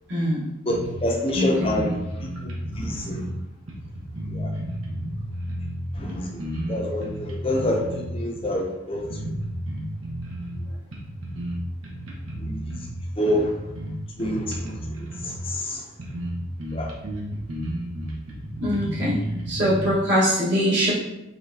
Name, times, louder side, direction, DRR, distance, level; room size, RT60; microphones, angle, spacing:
voice 1, 0.1-0.4 1.3-1.7 18.6-19.2 19.5-20.9, equal, 55° right, -9 dB, 1.6 m, -22 dB
voice 2, 0.7-2.0 2.4-2.5 2.8-3.2 4.3-4.5 6.0-6.3 6.7-9.1 12.4-12.8 13.2-13.5 14.2-15.8 16.7-16.9, left 1 dB, 25° left, 1 dB, 0.7 m, -27 dB
sound 1, 0.7-1.3 1.6-3.2 3.7-5.8 6.1-8.0 8.4-8.5 8.9-10.6 10.9-11.6 11.8-12.9 13.3-15.4 15.7-15.8 16.0-16.3 16.6-19.9, right 1 dB, 75° right, 1.1 m, -32 dB
5.6 x 3.3 x 2.8 m, 0.92 s
head